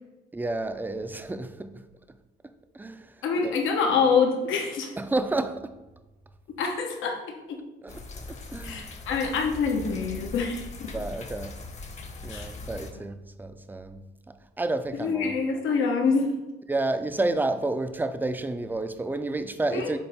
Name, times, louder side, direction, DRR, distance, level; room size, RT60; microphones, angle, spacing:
voice 1, 0.3-1.8 2.4-3.6 5.0-5.7 7.8-9.0 10.9-11.6 12.2-15.4 16.7-20.0, right 2 dB, 10° right, 0.4 m, -31 dB
voice 2, 3.2-4.9 6.6-7.2 7.5-7.6 8.6-10.9 12.3-12.5 15.0-16.3 19.7-20.0, left 5 dB, 80° left, 1.1 m, -26 dB
sound 1, 7.9-12.9, left 3 dB, 35° left, 0.9 m, -40 dB
7.0 x 3.9 x 3.5 m
cardioid pair, 90°, 20 cm